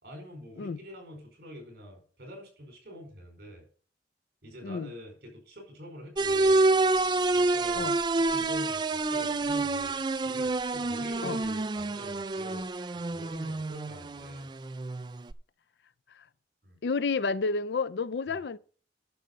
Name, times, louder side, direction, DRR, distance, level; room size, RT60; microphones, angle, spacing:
voice 1, 0.0-3.7 4.4-6.7 7.3-12.7 12.9-14.5 16.6-16.8 18.3-18.4, equal, 60° right, 4.6 m, -46 dB
sound 1, 6.2-15.3, right 2 dB, 25° right, 0.4 m, -28 dB
voice 2, 16.8-18.6, left 4 dB, 70° left, 0.4 m, -30 dB
10.5 x 6.3 x 5.4 m
head